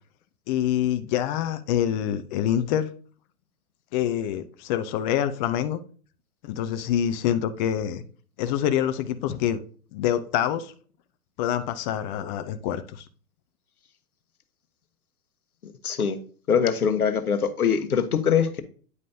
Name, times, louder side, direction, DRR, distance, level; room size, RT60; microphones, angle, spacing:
voice 1, 0.5-2.9 3.9-5.8 6.4-8.0 8.4-9.6 9.9-10.7 11.4-13.0, left 10 dB, 35° left, 0.6 m, -26 dB
voice 2, 15.8-16.2 16.5-18.6, left 7 dB, 85° left, 1.1 m, -23 dB
9.4 x 5.2 x 2.7 m
hypercardioid pair, 115°, 43 cm